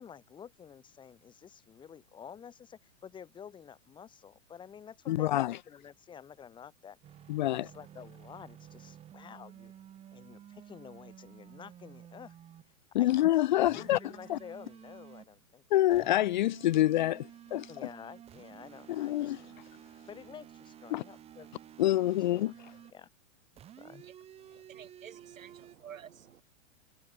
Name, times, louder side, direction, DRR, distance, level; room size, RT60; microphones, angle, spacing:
voice 1, 0.0-7.0 7.4-9.7 10.1-12.4 13.0-13.1 13.5-15.6 17.7-19.3 20.1-21.5 22.1-23.1 23.8-24.0 24.5-24.6, left 8 dB, 10° left, 5.1 m, -50 dB
voice 2, 5.1-5.6 7.3-7.7 12.9-14.0 14.3-14.4 15.7-17.7 18.9-19.4 20.9-21.0 21.8-22.5, left 14 dB, 35° left, 0.7 m, -27 dB
sound 1, 7.0-12.7 13.6-15.3 15.9-23.0 23.6-25.8, right 10 dB, 15° right, 5.2 m, -52 dB
voice 3, 24.7-26.4, right 9 dB, 90° right, 6.7 m, -50 dB
hypercardioid pair, 170°, 39 cm